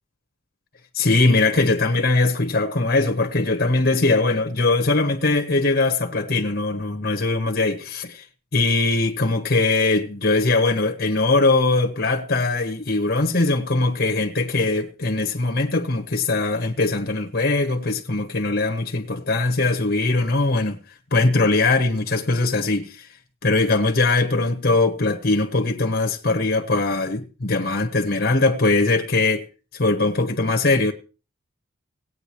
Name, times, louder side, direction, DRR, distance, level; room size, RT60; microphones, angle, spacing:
voice 1, 0.9-8.3 8.5-23.2 23.4-29.5 29.7-30.9, left 3 dB, 50° left, 1.1 m, -21 dB
18.0 x 9.1 x 3.0 m
head